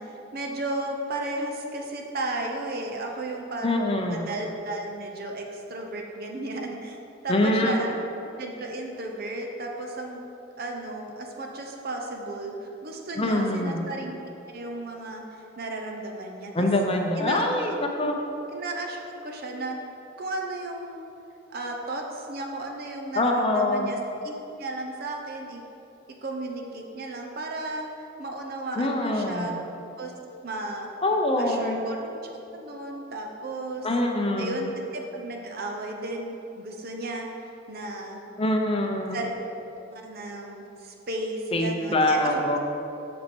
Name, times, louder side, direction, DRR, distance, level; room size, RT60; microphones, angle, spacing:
voice 1, 0.0-7.0 7.2-8.0 8.4-10.2 10.6-14.2 14.5-15.2 15.6-16.7 17.2-17.4 18.5-19.8 20.2-21.0 21.5-24.0 24.2-25.6 26.2-29.5 30.0-30.1 30.4-30.9 31.4-33.9 34.4-37.3 37.7-38.2 39.1-39.3 39.9-42.6, right 2 dB, 50° right, 1 dB, 0.8 m, -34 dB
voice 2, 3.6-4.2 7.3-7.8 13.2-13.9 16.5-18.2 23.2-23.9 28.8-29.5 31.0-31.8 33.8-34.6 38.4-39.2 41.5-42.6, left 1 dB, 30° left, 3 dB, 0.6 m, -24 dB
7.4 x 6.4 x 4.3 m, 2.9 s
head